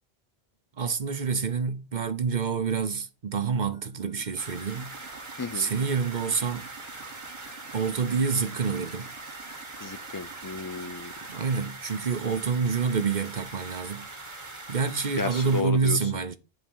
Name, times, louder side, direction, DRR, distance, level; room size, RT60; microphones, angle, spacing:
voice 1, 0.8-5.0 5.5-6.7 7.7-9.1 11.3-14.1 14.7-16.4, right 5 dB, 45° right, 0.9 m, -27 dB
sound 1, 3.7-11.7, right 6 dB, 70° right, 1.2 m, -49 dB
sound 2, 4.4-15.6, right 2 dB, 25° right, 1.2 m, -42 dB
voice 2, 5.4-5.7 9.8-11.1 15.1-16.1, left 4 dB, 30° left, 0.4 m, -33 dB
11.0 x 3.8 x 5.5 m
omnidirectional pair, 1.1 m